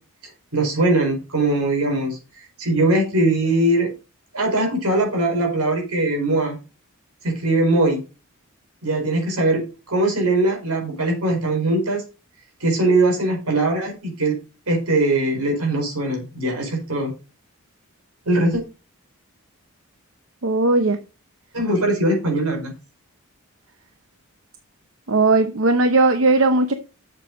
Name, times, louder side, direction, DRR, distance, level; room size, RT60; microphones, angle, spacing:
voice 1, 0.5-2.2 2.6-3.9 4.3-6.6 7.2-8.0 8.8-12.0 12.6-14.3 14.7-17.1 18.2-18.6 21.5-22.7, right 2 dB, 85° right, 4.6 m, -21 dB
voice 2, 20.4-21.0 25.1-26.7, right 3 dB, 65° right, 0.8 m, -17 dB
8.0 x 6.9 x 5.0 m
head